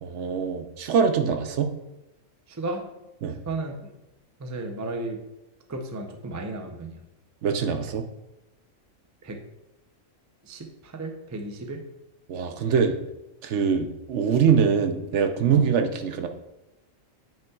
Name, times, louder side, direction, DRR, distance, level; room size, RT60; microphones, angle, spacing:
voice 1, 0.0-1.7 3.2-3.4 7.4-8.0 12.3-13.0 13.4-16.3, right 6 dB, 65° right, 6 dB, 0.9 m, -23 dB
voice 2, 2.5-2.8 3.5-3.9 4.4-5.2 5.7-7.0 9.2-9.4 10.4-11.8 15.5-15.7, right 2 dB, 25° right, 4 dB, 0.3 m, -34 dB
9.0 x 5.5 x 2.3 m, 0.96 s
omnidirectional pair, 1.4 m